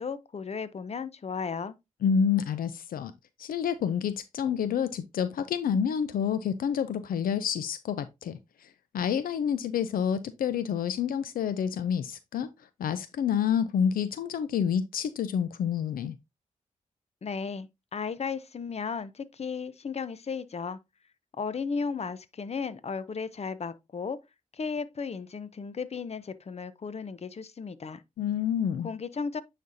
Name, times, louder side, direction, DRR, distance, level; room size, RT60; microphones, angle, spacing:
voice 1, 0.0-1.7 17.2-20.8 21.4-24.2 24.5-28.0 28.8-29.4, left 5 dB, 45° left, 0.7 m, -35 dB
voice 2, 2.0-3.1 3.4-8.7 8.9-12.5 12.8-16.2 28.2-28.9, left 8 dB, 85° left, 0.5 m, -28 dB
9.3 x 4.2 x 2.6 m
cardioid pair, 55°, 14 cm